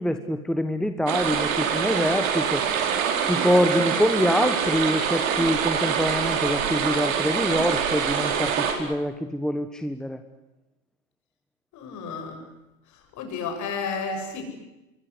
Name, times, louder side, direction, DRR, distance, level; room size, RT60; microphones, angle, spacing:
voice 1, 0.0-2.6 3.3-10.2, equal, ahead, 8 dB, 1.4 m, -25 dB
sound 1, 1.1-8.7, right 7 dB, 70° right, 5.1 m, -25 dB
voice 2, 11.7-12.4 13.2-14.5, left 5 dB, 45° left, 5 dB, 7.8 m, -31 dB
26.0 x 23.0 x 8.1 m, 0.99 s
hypercardioid pair, 100°, 41 cm